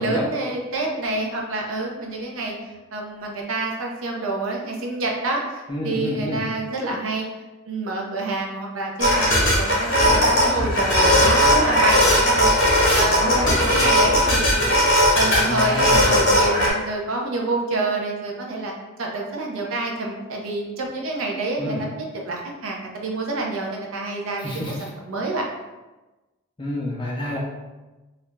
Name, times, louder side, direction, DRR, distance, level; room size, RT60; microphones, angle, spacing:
voice 1, 0.0-2.5 2.9-7.2 7.7-12.6 12.9-14.8 15.1-18.7 19.0-25.5, right 2 dB, 65° right, 0 dB, 0.5 m, -27 dB
voice 2, 5.7-6.5 15.5-16.2 21.6-21.8 24.4-24.8 26.6-27.4, left 1 dB, 20° left, -3 dB, 0.4 m, -28 dB
sound 1, 9.0-16.7, equal, 60° left, 0.8 m, -18 dB
2.4 x 2.1 x 3.1 m, 1.1 s
head